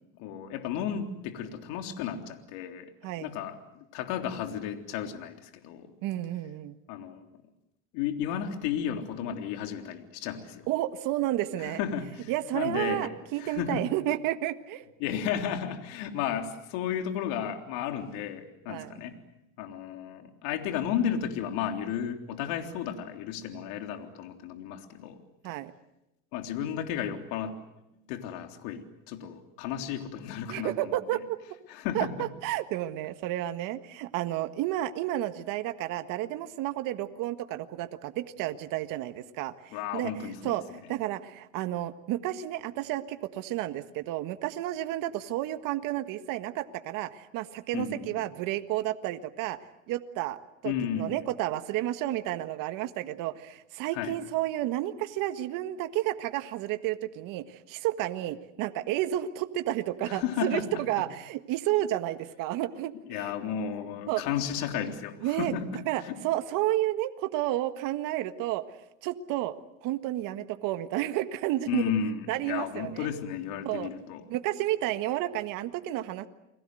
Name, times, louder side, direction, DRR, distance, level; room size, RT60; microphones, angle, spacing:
voice 1, 0.2-2.9 3.2-5.9 6.9-7.3 7.9-10.7 11.6-13.1 13.4-13.8 15.0-19.2 19.6-25.2 26.3-27.6 28.1-31.0 31.7-32.3 39.7-40.6 47.7-48.2 50.6-51.2 53.9-54.2 60.0-60.8 63.1-66.2 71.7-74.2, left 8 dB, 65° left, 5 dB, 3.6 m, -33 dB
voice 2, 6.0-6.8 10.7-11.8 12.3-14.8 18.7-19.0 25.4-25.7 30.5-31.4 31.9-49.6 49.9-63.3 64.1-64.2 65.2-68.6 69.0-69.5 69.8-71.8 72.3-73.1 73.6-73.9 74.3-76.3, right 14 dB, 55° right, 9 dB, 1.7 m, -31 dB
30.0 x 21.5 x 7.9 m, 0.88 s
supercardioid pair, 110°, 39 cm